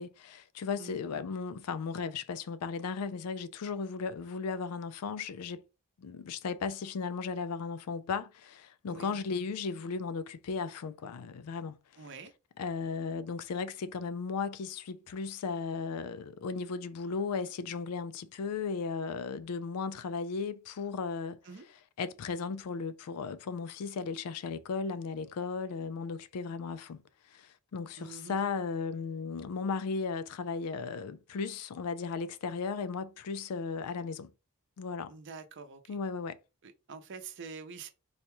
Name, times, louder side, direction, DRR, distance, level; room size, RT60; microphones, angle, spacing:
voice 1, 0.0-5.6 6.0-12.1 12.6-21.4 22.0-27.0 27.3-34.3 34.8-35.1 35.9-36.4, left 5 dB, 90° left, 0.4 m, -36 dB
voice 2, 12.0-12.3 21.4-21.7 28.0-28.4 35.1-36.0 36.6-37.9, right 5 dB, 55° right, 0.6 m, -46 dB
4.0 x 2.2 x 3.0 m
head